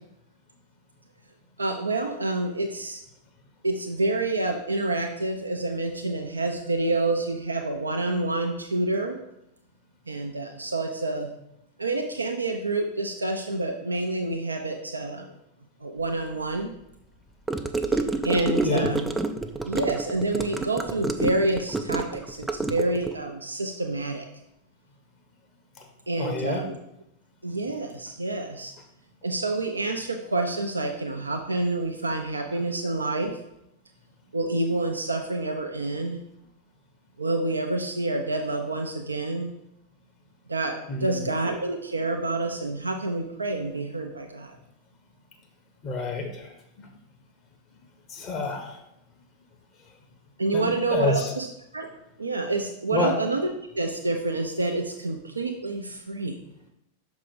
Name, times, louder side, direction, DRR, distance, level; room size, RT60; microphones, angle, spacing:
voice 1, 1.6-3.0 3.6-9.2 10.1-11.3 11.8-15.3 15.8-16.7 17.9-19.1 19.6-24.2 26.1-26.8 27.4-28.7 29.2-33.4 34.3-36.2 37.2-39.5 40.5-44.6 50.4-51.5 51.7-51.9 52.2-56.3, right 2 dB, 80° right, 3 dB, 0.5 m, -28 dB
Gurgling / Car passing by / Sink (filling or washing), 17.5-23.2, right 3 dB, 10° right, 0.4 m, -28 dB
voice 2, 26.2-26.6 40.9-41.3 45.8-46.5 48.1-48.8 50.5-51.3 52.9-53.1, left 3 dB, 35° left, 3 dB, 1.1 m, -28 dB
6.4 x 4.8 x 4.0 m, 0.83 s
figure-of-eight pair, 90°, 0 cm